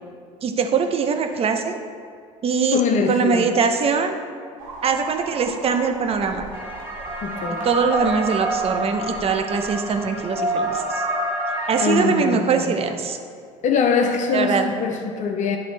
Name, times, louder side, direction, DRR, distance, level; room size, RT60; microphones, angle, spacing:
voice 1, 0.4-1.7 2.4-2.8 3.1-4.2 4.8-6.5 7.6-11.0 11.7-13.2 14.3-14.7, right 5 dB, 35° right, 6 dB, 0.7 m, -22 dB
voice 2, 2.7-3.6 7.2-7.7 11.6-12.8 13.6-15.6, left 5 dB, 50° left, 4 dB, 0.6 m, -23 dB
sound 1, 4.6-10.9, right 2 dB, 85° right, 1.3 m, -40 dB
sound 2, 6.5-12.0, right 1 dB, 10° right, 1.3 m, -27 dB
10.5 x 3.9 x 3.2 m, 2.3 s
hypercardioid pair, 80°, 17 cm